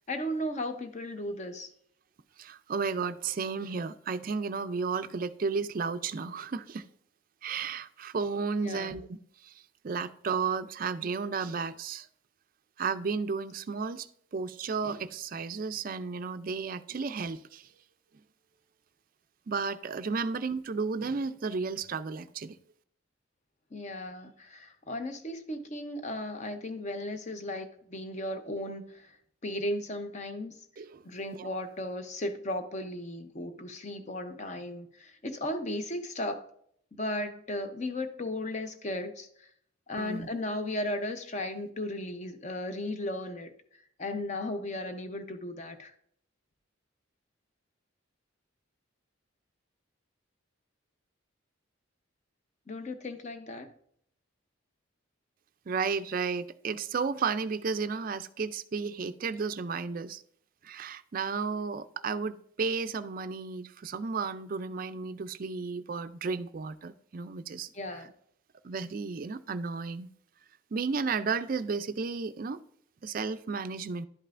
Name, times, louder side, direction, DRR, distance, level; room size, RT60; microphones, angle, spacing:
voice 1, 0.1-1.7 8.6-8.9 23.7-29.2 29.4-30.6 31.0-36.5 36.9-39.5 39.9-43.5 44.0-45.9 52.7-53.7 67.7-68.1, left 1 dB, 35° left, 8 dB, 0.7 m, -36 dB
voice 2, 2.4-6.9 7.4-9.2 9.4-9.5 9.8-12.1 12.8-17.7 19.5-22.6 30.8-31.0 31.4-31.5 40.0-40.3 55.7-60.2 60.6-67.7 68.6-70.1 70.7-72.6 73.0-74.1, right 5 dB, 40° right, 12 dB, 0.4 m, -33 dB
11.5 x 5.4 x 2.5 m, 0.67 s
head